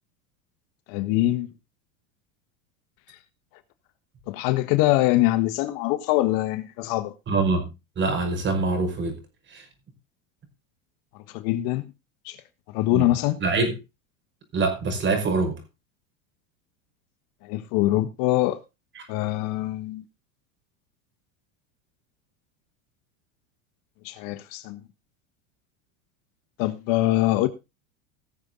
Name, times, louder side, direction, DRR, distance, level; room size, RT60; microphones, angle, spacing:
voice 1, 0.9-1.5 3.1-3.2 4.3-7.1 11.3-11.9 12.2-12.4 12.7-13.4 17.4-18.6 19.1-20.0 24.0-24.8 26.6-27.5, left 16 dB, 55° left, 1.5 m, -23 dB
voice 2, 7.3-7.7 8.0-9.2 9.5-9.7 12.9-13.1 13.4-13.8 14.5-15.6 19.0-19.1, right 3 dB, 30° right, 5.4 m, -24 dB
18.5 x 7.1 x 3.9 m
supercardioid pair, 125°, 40 cm